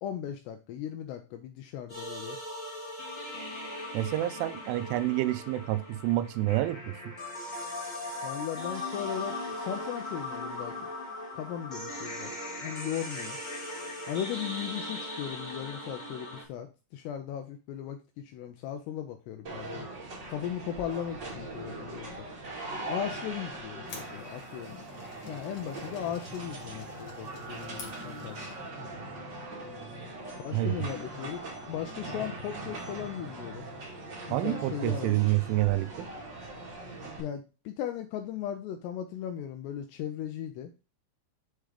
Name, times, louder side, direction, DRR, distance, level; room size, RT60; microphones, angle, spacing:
voice 1, 0.0-2.4 8.2-10.7 11.3-12.4 12.6-13.4 14.1-19.9 20.3-22.3 22.9-24.8 25.2-28.4 30.4-33.7 34.3-35.2 37.2-40.7, left 10 dB, 85° left, 2.4 m, -37 dB
sound 1, 1.9-16.4, left 1 dB, 30° left, 0.8 m, -39 dB
voice 2, 3.9-7.1 30.5-30.9 34.3-36.1 37.0-37.2, right 16 dB, 90° right, 3.1 m, -28 dB
sound 2, 19.4-37.2, right 2 dB, 45° right, 1.5 m, -41 dB
sound 3, 23.5-28.7, left 4 dB, 60° left, 2.0 m, -51 dB
7.5 x 3.5 x 4.9 m
omnidirectional pair, 5.4 m